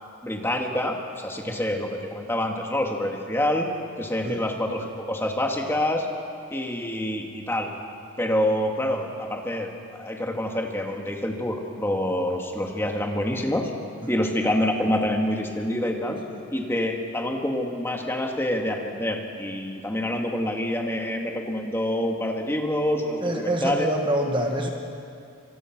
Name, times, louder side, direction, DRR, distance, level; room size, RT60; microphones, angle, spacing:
voice 1, 0.2-3.7 4.0-6.1 6.5-7.7 8.2-13.7 14.1-16.2 16.5-23.9, left 1 dB, 10° left, 1 dB, 2.0 m, -27 dB
voice 2, 23.2-24.7, right 1 dB, 20° right, 2 dB, 1.5 m, -26 dB
26.0 x 25.5 x 6.1 m, 2.4 s
head